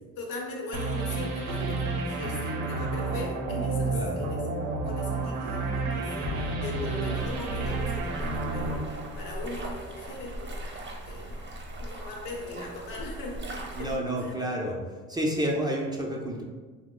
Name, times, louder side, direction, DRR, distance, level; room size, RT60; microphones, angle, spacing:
voice 1, 0.2-14.3, left 1 dB, 80° left, -2 dB, 0.9 m, -39 dB
sound 1, 0.7-9.8, right 3 dB, 65° right, 0.6 m, -31 dB
voice 2, 3.9-4.2 13.7-14.8 15.1-16.4, right 1 dB, 15° right, -1 dB, 0.5 m, -30 dB
sound 2, 6.2-10.1, left 4 dB, 40° left, 0.5 m, -44 dB
sound 3, 7.1-14.0, right 1 dB, 35° right, 0.8 m, -39 dB
2.9 x 2.1 x 3.6 m, 1.3 s
supercardioid pair, 65°, 31 cm